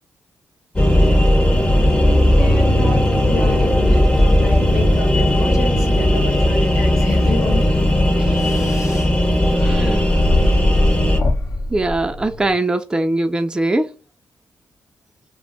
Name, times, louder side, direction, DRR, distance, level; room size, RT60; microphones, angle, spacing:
sound 1, 0.8-11.2, left 1 dB, 20° left, 0.7 m, -16 dB
voice 1, 2.4-7.7 8.6-8.7, left 3 dB, 85° left, 1.1 m, -29 dB
sound 2, 7.6-12.5, left 1 dB, 60° left, 0.7 m, -22 dB
voice 2, 9.5-10.1 11.7-13.9, right 2 dB, 15° right, 0.4 m, -21 dB
2.2 x 2.1 x 3.7 m
cardioid pair, 75°, 6 cm